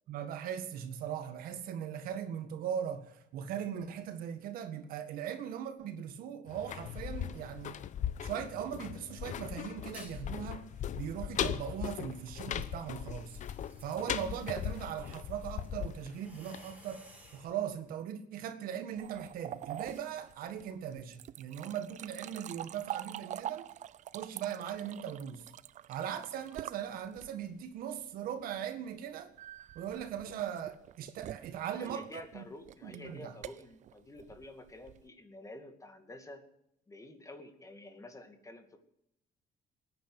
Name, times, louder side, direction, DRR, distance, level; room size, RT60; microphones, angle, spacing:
voice 1, 0.1-7.8 8.2-10.7 10.9-13.4 13.8-23.7 24.1-25.5 25.9-29.3 29.7-32.5 32.8-33.4, right 9 dB, 80° right, 1.8 m, -39 dB
sound 1, 6.5-17.3 17.6-17.7, left 10 dB, 55° left, 0.9 m, -39 dB
sound 2, 9.9-10.3 10.7-17.5, right 2 dB, 10° right, 5.1 m, -59 dB
sound 3, 19.0-27.6 29.4-35.1, right 11 dB, 55° right, 0.5 m, -45 dB
voice 2, 31.7-36.4 36.9-38.9, left 2 dB, 20° left, 2.3 m, -50 dB
18.0 x 10.0 x 8.0 m
cardioid pair, 100°, 15 cm